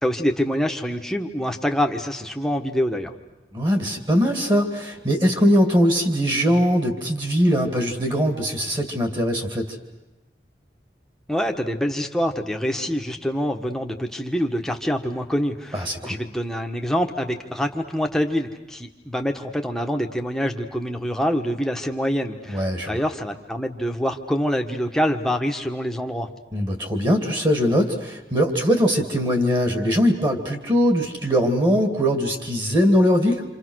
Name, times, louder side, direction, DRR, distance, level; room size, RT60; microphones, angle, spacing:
voice 1, 0.0-3.1 11.3-26.3, equal, 5° left, 3 dB, 1.4 m, -25 dB
voice 2, 3.5-9.7 15.7-16.1 22.5-23.0 26.5-33.4, equal, 25° right, 5 dB, 2.3 m, -21 dB
28.0 x 27.0 x 6.4 m, 1.1 s
head